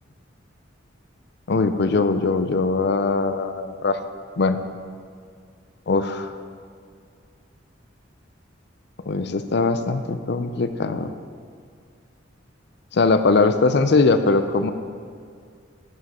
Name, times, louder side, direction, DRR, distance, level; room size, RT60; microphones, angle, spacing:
voice 1, 1.5-4.0 4.4-4.6 5.9-6.4 9.1-11.1 12.9-14.7, left 3 dB, 60° left, 10 dB, 0.5 m, -21 dB
12.0 x 7.5 x 4.3 m, 2.2 s
head